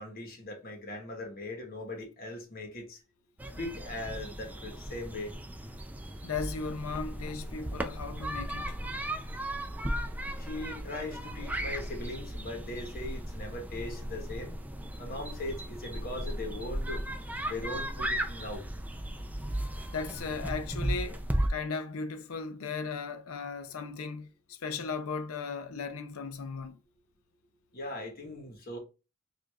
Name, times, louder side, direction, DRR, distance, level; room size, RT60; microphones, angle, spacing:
voice 1, 0.0-3.0 3.5-5.3 10.4-14.6 15.0-17.0 17.4-18.7 27.7-28.8, left 2 dB, 45° left, 1.0 m, -39 dB
sound 1, 3.4-21.5, right 1 dB, 5° right, 0.3 m, -36 dB
voice 2, 6.2-8.8 19.9-21.2 21.5-26.8, left 4 dB, 75° left, 0.5 m, -36 dB
4.6 x 2.4 x 2.3 m
head